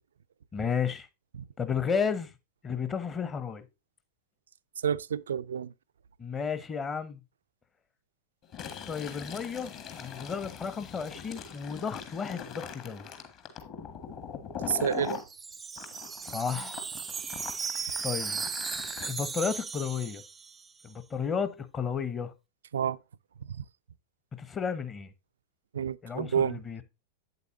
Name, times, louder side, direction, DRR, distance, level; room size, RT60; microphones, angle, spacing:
voice 1, 0.5-1.1 1.6-2.3 2.6-3.7 6.2-7.2 8.9-13.1 16.2-16.8 18.0-18.5 19.1-20.2 20.8-22.3 24.4-25.1 26.0-26.8, left 6 dB, 20° left, 1.0 m, -33 dB
voice 2, 4.8-5.7 14.7-15.2 22.7-23.0 23.4-23.6 25.7-26.6, right 8 dB, 65° right, 0.4 m, -29 dB
Fill (with liquid), 8.4-15.2 15.8-19.1, left 6 dB, 40° left, 1.7 m, -41 dB
Wind chime, 14.8-20.8, right 5 dB, 15° right, 0.6 m, -36 dB
8.6 x 8.2 x 2.7 m
figure-of-eight pair, 90°, 0 cm